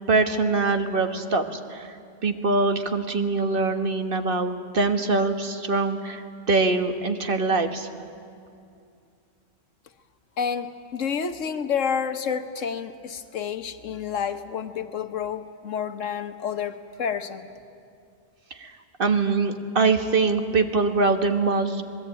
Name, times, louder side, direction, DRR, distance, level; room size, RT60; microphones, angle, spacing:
voice 1, 0.1-1.9 2.2-7.9 18.6-18.7 19.0-21.8, right 3 dB, 45° right, 7 dB, 1.6 m, -23 dB
voice 2, 10.4-17.5, left 7 dB, 85° left, 9 dB, 1.5 m, -29 dB
26.0 x 20.0 x 8.9 m, 2.4 s
omnidirectional pair, 1.3 m